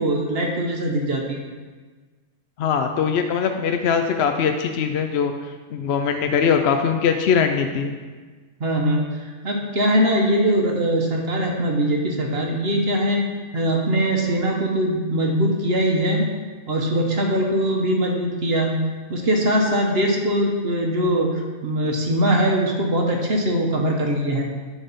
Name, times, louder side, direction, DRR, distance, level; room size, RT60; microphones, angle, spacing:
voice 1, 0.0-1.4 8.6-13.2 13.5-16.3 16.7-18.7 19.1-24.5, right 1 dB, 55° right, 1 dB, 1.1 m, -21 dB
voice 2, 2.6-5.3 5.7-7.9, left 6 dB, 65° left, 6 dB, 0.7 m, -21 dB
11.0 x 4.1 x 5.3 m, 1.4 s
omnidirectional pair, 1.3 m